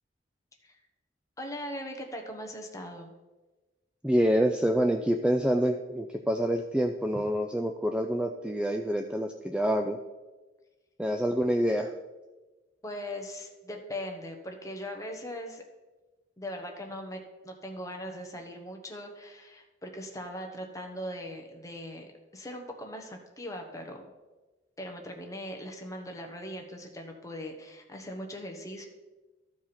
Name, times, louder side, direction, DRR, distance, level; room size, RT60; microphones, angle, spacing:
voice 1, 1.4-3.1 7.1-7.2 12.8-15.6 16.4-24.1 24.8-28.9, equal, 15° left, 3 dB, 1.1 m, -40 dB
voice 2, 4.0-10.0 11.0-11.9, equal, 5° right, 4 dB, 0.3 m, -27 dB
13.5 x 4.7 x 4.3 m, 1.2 s
head